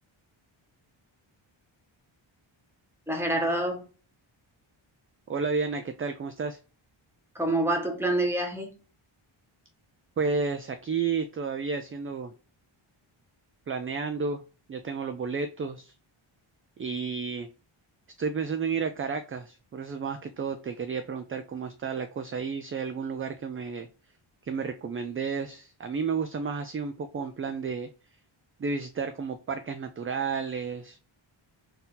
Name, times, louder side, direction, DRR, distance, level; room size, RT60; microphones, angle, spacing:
voice 1, 3.1-3.9 7.3-8.7, right 1 dB, 5° right, 1 dB, 1.2 m, -27 dB
voice 2, 5.3-6.6 10.2-12.3 13.7-14.4 14.7-15.9 16.8-17.5 18.2-23.9 24.4-27.9 28.6-31.0, right 5 dB, 30° right, 8 dB, 0.3 m, -31 dB
4.1 x 2.7 x 3.8 m, 0.36 s
wide cardioid pair, 105°, 49 cm